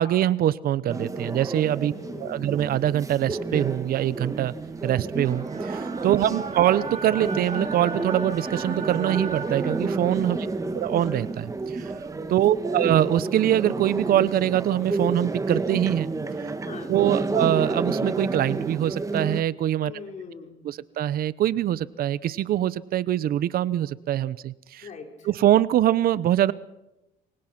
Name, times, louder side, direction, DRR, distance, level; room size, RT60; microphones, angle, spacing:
voice 1, 0.0-1.9 2.2-4.5 4.8-10.4 10.7-11.9 12.3-16.1 16.9-19.9 20.6-24.9 25.3-26.5, right 12 dB, 60° right, 18 dB, 0.8 m, -23 dB
sound 1, 0.9-19.4, right 3 dB, 20° right, 1.7 m, -30 dB
voice 2, 1.9-2.5 6.2-6.5 10.3-10.7 12.5-12.7 16.6-17.4 19.8-20.6 24.8-25.3, left 4 dB, 45° left, 4 dB, 4.6 m, -41 dB
sound 2, 3.4-12.5, right 4 dB, 40° right, 5.4 m, -39 dB
28.0 x 23.5 x 5.9 m, 0.91 s
cardioid pair, 110°, 17 cm